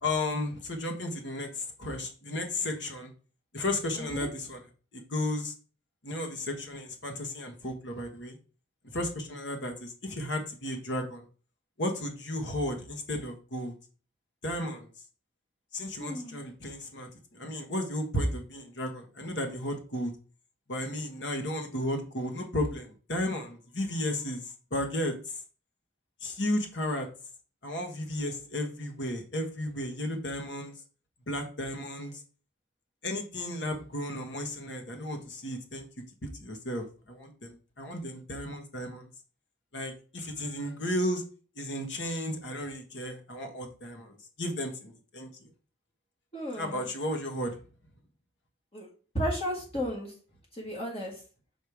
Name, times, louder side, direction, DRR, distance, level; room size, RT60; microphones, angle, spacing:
voice 1, 0.0-3.1 3.5-4.6 4.9-5.5 6.0-8.4 8.9-11.2 11.8-13.7 14.4-14.9 15.7-20.1 20.7-24.4 24.7-25.4 26.2-27.1 27.6-30.7 31.3-32.1 33.0-35.9 36.4-39.1 39.7-41.2 41.5-45.3 46.6-47.6, left 1 dB, 65° left, 4 dB, 1.5 m, -34 dB
voice 2, 4.0-4.3 16.0-16.4 46.3-46.9 48.7-48.9 49.1-50.1 50.5-51.2, equal, 30° left, -3 dB, 1.8 m, -34 dB
6.7 x 4.3 x 4.8 m, 0.38 s
head